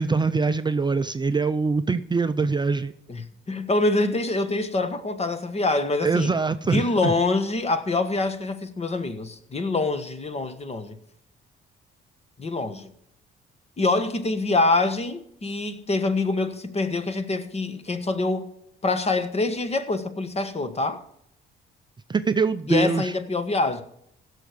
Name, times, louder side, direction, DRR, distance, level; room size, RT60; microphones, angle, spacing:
voice 1, 0.0-2.9 6.0-7.1 22.1-23.1, right 4 dB, 20° right, 0.5 m, -23 dB
voice 2, 3.1-6.3 6.6-11.0 12.4-12.9 13.8-18.5 18.8-21.0 22.7-23.8, left 3 dB, 30° left, 1.3 m, -25 dB
16.0 x 6.6 x 5.1 m
cardioid pair, 90°, 20 cm